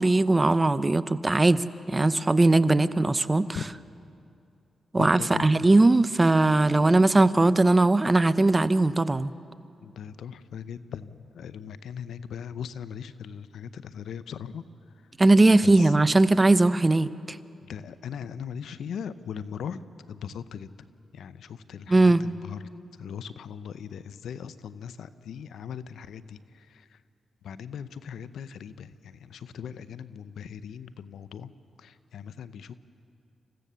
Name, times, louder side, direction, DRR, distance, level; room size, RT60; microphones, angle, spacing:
voice 1, 0.0-3.6 4.9-9.3 15.2-17.4 21.9-22.2, right 2 dB, 25° right, 15 dB, 0.7 m, -20 dB
voice 2, 5.0-5.6 9.8-14.6 15.6-15.9 17.6-19.8 20.1-20.7 21.1-22.6 23.0-27.0 27.4-31.5 31.8-32.7, left 8 dB, 80° left, 15 dB, 0.6 m, -39 dB
26.5 x 15.5 x 6.9 m, 2.6 s
supercardioid pair, 55°, 0 cm